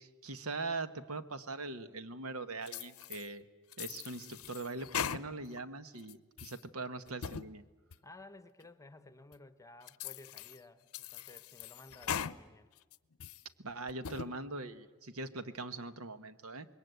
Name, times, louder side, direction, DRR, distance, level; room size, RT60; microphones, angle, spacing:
voice 1, 0.0-3.4 3.8-7.6 13.6-16.7, right 3 dB, 70° right, 12 dB, 1.3 m, -41 dB
sound 1, 2.7-3.3 3.7-5.6 6.0-6.6 7.1-7.5 7.9-8.0 8.6-8.7 9.3-9.4 9.9-10.6 10.9-12.4 12.8-13.4 13.9-14.3, left 8 dB, 75° left, 0.7 m, -41 dB
voice 2, 8.0-12.7, left 2 dB, 15° left, 12 dB, 1.0 m, -55 dB
26.5 x 21.5 x 8.2 m, 1.2 s
head